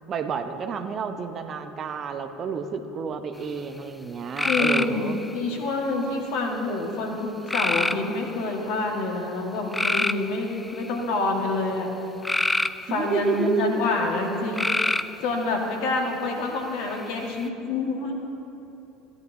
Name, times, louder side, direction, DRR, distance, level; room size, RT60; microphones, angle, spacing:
voice 1, 0.1-5.2 12.9-13.8, right 5 dB, 35° right, 8 dB, 0.7 m, -30 dB
voice 2, 4.4-5.1 5.3-11.9 12.8-14.7 15.2-18.2, left 3 dB, 60° left, 1 dB, 1.7 m, -27 dB
sound 1, 4.4-5.4 7.5-8.3 9.7-11.0 12.2-13.4 14.5-15.2 16.9-17.4, left 2 dB, 10° left, 0.3 m, -26 dB
16.5 x 10.5 x 2.8 m, 2.8 s
figure-of-eight pair, 70°, 0 cm